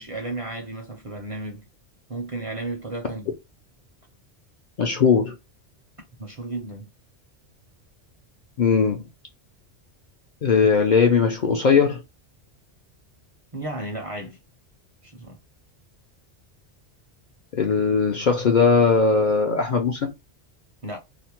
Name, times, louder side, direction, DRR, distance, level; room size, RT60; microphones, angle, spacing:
voice 1, 0.0-1.6 2.1-3.3 6.2-6.9 13.5-14.4 15.0-15.4 20.8-21.0, right 2 dB, 40° right, 0.5 m, -33 dB
voice 2, 4.8-5.4 8.6-9.0 10.4-12.0 17.5-20.1, left 5 dB, 55° left, 0.5 m, -19 dB
2.5 x 2.0 x 2.8 m
omnidirectional pair, 1.2 m